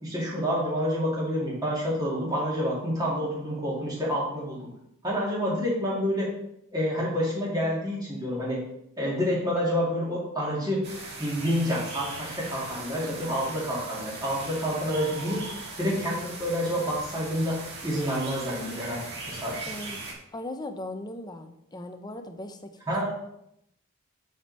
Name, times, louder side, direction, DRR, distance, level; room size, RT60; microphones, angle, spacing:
voice 1, 0.0-4.6 5.0-6.3 6.7-8.6 9.0-10.8 11.2-15.4 15.8-17.6 17.8-19.6 22.9-23.1, equal, 15° right, -5 dB, 2.5 m, -28 dB
sound 1, 10.8-20.1, right 3 dB, 50° right, 1.8 m, -39 dB
voice 2, 19.7-20.0 20.3-23.1, left 1 dB, 20° left, 7 dB, 0.6 m, -38 dB
8.4 x 5.1 x 4.2 m, 0.78 s
head